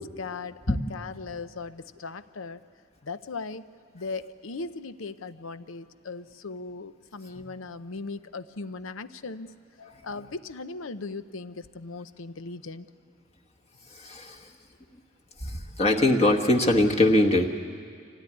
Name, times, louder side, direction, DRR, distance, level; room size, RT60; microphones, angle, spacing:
voice 1, 0.0-2.6 3.0-9.5 10.0-12.9, left 3 dB, 90° left, 12 dB, 0.8 m, -38 dB
voice 2, 13.9-14.4 15.4-17.5, left 1 dB, 30° left, 1 dB, 1.2 m, -22 dB
25.0 x 17.0 x 10.0 m, 2.2 s
head